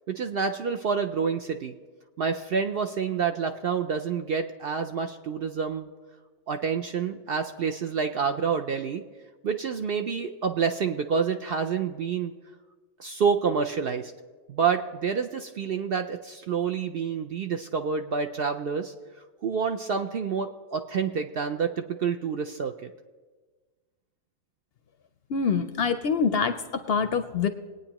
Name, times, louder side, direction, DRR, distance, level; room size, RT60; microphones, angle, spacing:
voice 1, 0.1-1.7 2.2-5.9 6.5-9.0 9.4-12.3 13.0-14.1 14.5-18.9 19.4-22.9, right 6 dB, 60° right, 6 dB, 0.6 m, -28 dB
voice 2, 25.3-27.5, left 5 dB, 60° left, 9 dB, 0.7 m, -25 dB
21.5 x 9.1 x 2.9 m, 1.4 s
omnidirectional pair, 1.4 m